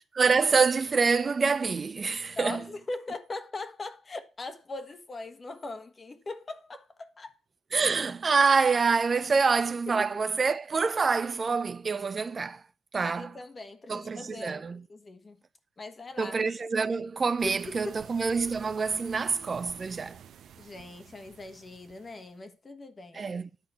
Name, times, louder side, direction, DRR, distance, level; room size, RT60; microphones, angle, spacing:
voice 1, 0.0-2.6 7.7-12.6 12.9-13.3 13.9-14.8 16.2-20.2 23.1-23.5, right 5 dB, 35° right, 0.5 m, -26 dB
voice 2, 2.4-7.4 9.9-10.1 13.0-14.6 14.9-15.4 15.8-16.4 17.4-18.0 20.6-23.3, left 2 dB, 30° left, 1.3 m, -40 dB
sound 1, 17.4-22.3, right 9 dB, 70° right, 0.8 m, -51 dB
10.5 x 4.2 x 6.8 m
cardioid pair, 90°, 0 cm